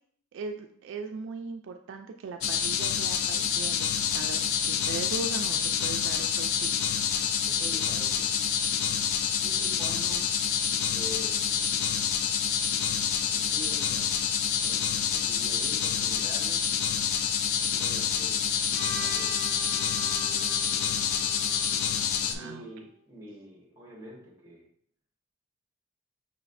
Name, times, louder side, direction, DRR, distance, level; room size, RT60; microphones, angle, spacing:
voice 1, 0.3-6.7 22.3-22.6, right 4 dB, 65° right, 5 dB, 0.3 m, -39 dB
sound 1, 2.4-22.3, left 8 dB, 85° left, 0.4 m, -27 dB
voice 2, 7.1-8.6 9.4-10.3 10.9-11.8 13.2-16.7 17.6-19.4 19.8-21.0 22.2-24.6, equal, 15° right, -3 dB, 1.2 m, -46 dB
Trumpet, 18.7-22.9, right 1 dB, 15° left, 1.5 m, -43 dB
5.6 x 3.0 x 2.5 m, 0.64 s
head